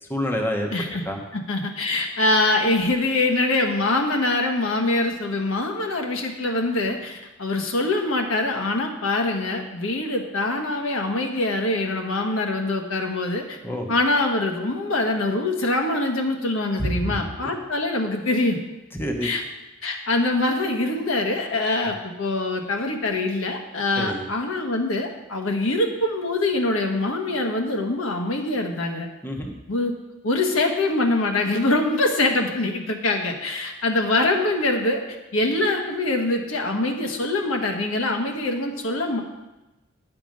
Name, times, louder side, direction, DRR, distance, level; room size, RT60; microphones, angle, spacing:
voice 1, 0.0-0.7 1.0-1.2 13.6-13.9 16.8-17.0 19.0-19.3 24.0-24.2 29.2-29.5, equal, 10° left, 2 dB, 0.9 m, -27 dB
voice 2, 0.7-1.0 1.3-13.6 13.9-18.6 19.2-19.4 19.8-29.1 29.7-29.9 30.2-35.0 35.3-39.2, left 2 dB, 75° left, 2 dB, 1.2 m, -24 dB
9.9 x 5.9 x 5.2 m, 1.0 s
head